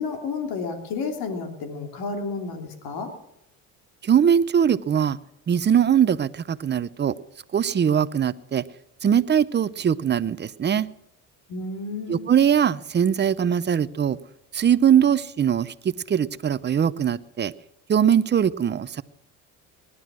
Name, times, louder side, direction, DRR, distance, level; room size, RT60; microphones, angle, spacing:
voice 1, 0.0-3.1 11.5-12.3, left 4 dB, 70° left, 3.1 m, -31 dB
voice 2, 4.0-5.2 5.5-7.1 7.5-8.6 9.0-10.9 12.1-14.2 14.5-15.7 16.1-17.5 17.9-19.0, right 8 dB, 30° right, 0.7 m, -21 dB
20.0 x 11.5 x 6.2 m
supercardioid pair, 100°, 39 cm